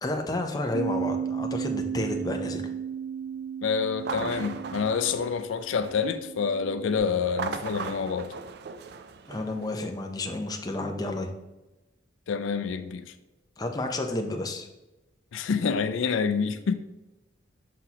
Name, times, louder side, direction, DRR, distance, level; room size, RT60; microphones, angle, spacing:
voice 1, 0.0-2.7 9.3-11.3 13.6-14.7, left 2 dB, 20° left, 0.6 m, -31 dB
Bass guitar, 0.7-7.0, right 7 dB, 80° right, 1.0 m, -34 dB
voice 2, 3.6-8.3 12.3-13.1 15.3-16.7, left 6 dB, 75° left, 0.4 m, -27 dB
sound 1, 3.9-6.2 7.2-9.7, right 5 dB, 55° right, 0.4 m, -37 dB
5.9 x 5.9 x 2.8 m
head